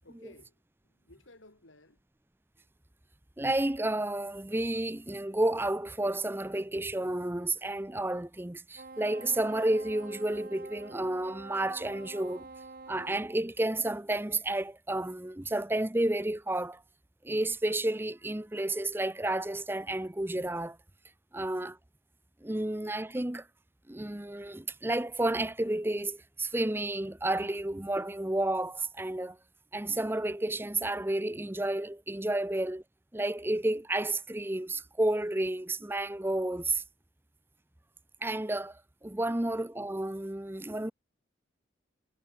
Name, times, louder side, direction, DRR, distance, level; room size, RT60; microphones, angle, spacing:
voice 1, 0.0-2.0, left 2 dB, 90° left, 4.6 m, -57 dB
voice 2, 3.4-12.5 12.9-16.8 17.2-20.8 21.3-21.8 22.4-23.5 23.9-29.4 29.7-32.8 33.1-36.8 38.2-40.9, right 1 dB, 10° right, 0.7 m, -31 dB
Wind instrument woodwind instrument, 8.7-13.2, right 3 dB, 50° right, 1.1 m, -47 dB
head